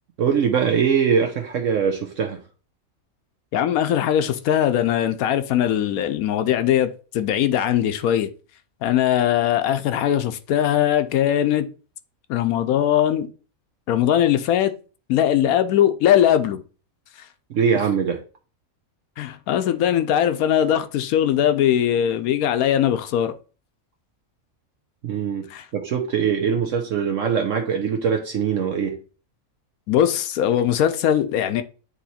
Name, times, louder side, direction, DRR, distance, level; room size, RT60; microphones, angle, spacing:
voice 1, 0.2-2.4 17.5-18.2 25.0-29.0, right 7 dB, 65° right, 1.0 m, -22 dB
voice 2, 3.5-8.3 8.8-11.7 12.3-13.3 13.9-14.7 15.1-16.6 19.2-23.3 25.5-25.6 29.9-31.6, left 10 dB, 80° left, 1.0 m, -20 dB
8.3 x 3.1 x 4.1 m
omnidirectional pair, 1.5 m